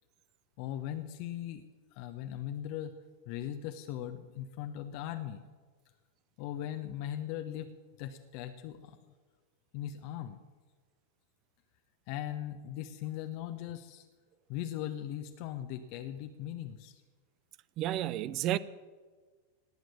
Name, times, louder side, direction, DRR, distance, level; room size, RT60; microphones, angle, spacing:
voice 1, 0.6-1.6 1.9-3.0 3.3-5.4 6.4-7.7 8.0-9.0 9.7-10.4 12.1-14.1 14.5-17.0, left 11 dB, 45° left, 0.9 m, -39 dB
voice 2, 17.8-18.6, right 13 dB, 35° right, 0.6 m, -31 dB
19.0 x 7.8 x 8.6 m
figure-of-eight pair, 90°, 0 cm